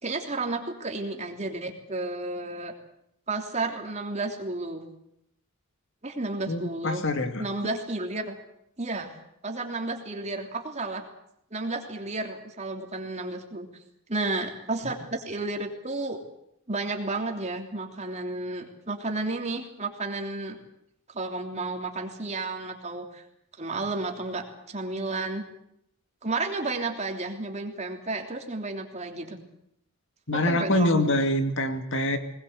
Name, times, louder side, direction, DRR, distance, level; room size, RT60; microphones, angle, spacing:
voice 1, 0.0-2.7 3.3-4.8 6.0-7.0 7.4-8.4 8.8-9.1 9.4-11.0 11.5-13.7 14.1-16.2 16.7-20.6 21.1-23.2 23.6-25.4 26.2-29.4 30.3-31.0, right 2 dB, 30° right, 3 dB, 3.3 m, -32 dB
voice 2, 6.5-7.4 30.3-32.2, left 1 dB, 60° left, 7 dB, 2.4 m, -25 dB
21.0 x 20.0 x 8.2 m, 0.77 s
head